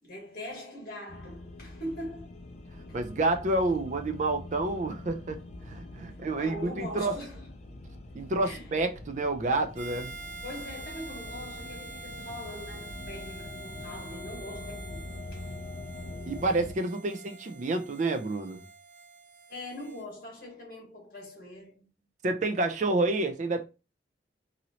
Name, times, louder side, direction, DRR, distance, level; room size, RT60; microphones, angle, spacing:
voice 1, 0.0-2.3 2.7-3.0 6.4-7.5 8.4-8.7 10.4-15.1 15.3-15.5 19.5-21.9, left 1 dB, 50° left, 1.4 m, -42 dB
sound 1, 1.1-16.7, left 2 dB, 35° left, 0.4 m, -44 dB
voice 2, 2.9-7.1 8.1-10.1 16.3-18.6 22.2-23.6, right 2 dB, 40° right, 0.4 m, -29 dB
Harmonica, 9.7-20.0, right 3 dB, 70° right, 0.9 m, -46 dB
3.0 x 2.7 x 2.8 m
head